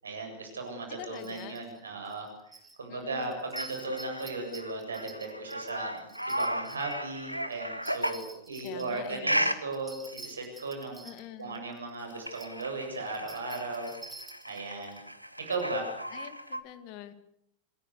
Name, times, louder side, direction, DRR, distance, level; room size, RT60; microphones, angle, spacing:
voice 1, 0.0-2.3 2.8-11.1 11.4-13.9 14.5-15.0 15.4-15.9, right 3 dB, 70° right, 3 dB, 8.0 m, -36 dB
sound 1, 0.7-0.8 1.1-1.8 2.0-2.8 3.2-7.0 7.5-9.1 9.7-12.6 13.0-15.0 15.5-15.6, right 3 dB, 10° right, 4.3 m, -48 dB
voice 2, 0.9-1.7 2.9-3.4 8.6-9.5 11.0-11.6 16.1-17.1, left 12 dB, 45° left, 12 dB, 2.3 m, -45 dB
sound 2, 3.5-8.3 9.3-9.6 10.1-10.3 12.0-16.6, equal, 90° right, 1.5 m, -35 dB
27.5 x 21.0 x 6.7 m, 0.76 s
figure-of-eight pair, 90°, 0 cm